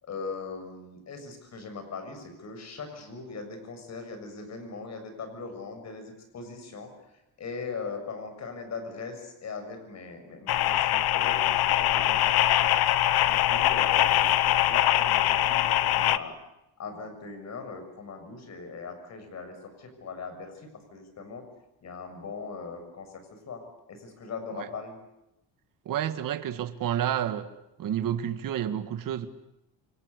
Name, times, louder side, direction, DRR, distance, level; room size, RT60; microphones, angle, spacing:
voice 1, 0.0-6.9 7.4-12.7 13.2-16.4 16.8-21.5 21.8-25.0, left 4 dB, 40° left, 7.0 m, -40 dB
sound 1, 10.5-16.2, left 13 dB, 65° left, 1.2 m, -23 dB
voice 2, 25.9-27.5 27.8-29.3, right 10 dB, 55° right, 2.0 m, -30 dB
29.0 x 24.5 x 8.3 m
cardioid pair, 155°, 40 cm